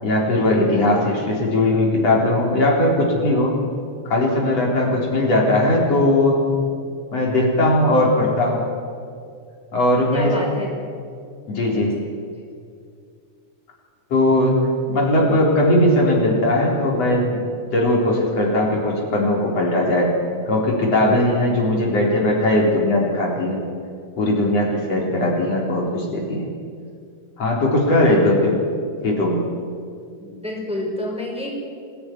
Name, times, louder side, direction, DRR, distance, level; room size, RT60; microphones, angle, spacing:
voice 1, 0.0-3.5 4.0-6.4 7.1-8.6 9.7-10.3 11.5-12.0 14.1-14.6 14.9-17.4 17.7-20.1 20.5-23.6 24.2-26.5 27.4-28.6 29.0-29.5, left 1 dB, 60° left, -3 dB, 5.1 m, -19 dB
voice 2, 10.1-10.7 12.0-12.1 24.7-25.1 30.2-31.5, left 1 dB, ahead, -2 dB, 5.3 m, -29 dB
25.5 x 17.0 x 9.7 m, 2.3 s
omnidirectional pair, 3.3 m